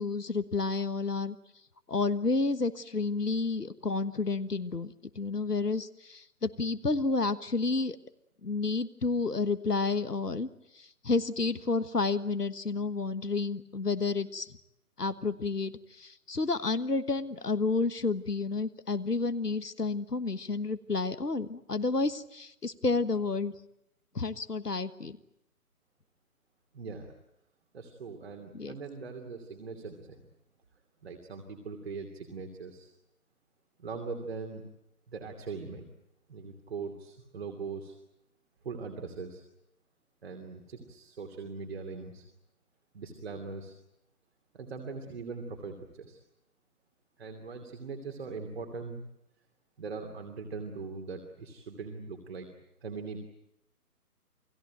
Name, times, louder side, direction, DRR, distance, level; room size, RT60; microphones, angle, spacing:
voice 1, 0.0-1.4 1.9-8.0 8.4-10.5 10.7-14.5 15.0-23.5 24.1-25.2 28.5-28.8, left 3 dB, 85° left, 12 dB, 1.5 m, -30 dB
voice 2, 26.7-27.1 27.7-30.2 31.0-32.9 33.8-34.6 35.1-35.9 36.3-38.0 38.6-39.4 40.2-42.2 42.9-43.7 44.5-46.2 47.2-49.0 49.8-52.5 52.8-53.2, right 4 dB, 40° right, 3 dB, 2.9 m, -41 dB
29.0 x 19.0 x 9.1 m, 0.82 s
figure-of-eight pair, 145°, 46 cm